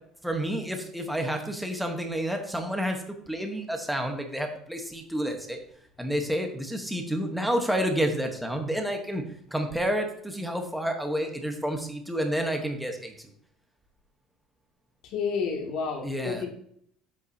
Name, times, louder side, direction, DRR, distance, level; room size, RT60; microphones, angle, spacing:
voice 1, 0.2-5.6 6.0-9.2 9.5-13.3 16.0-16.5, equal, ahead, 3 dB, 1.1 m, -29 dB
voice 2, 15.0-16.5, left 5 dB, 55° left, 0 dB, 2.4 m, -30 dB
9.7 x 8.3 x 2.8 m, 0.68 s
cardioid pair, 160°, 0 cm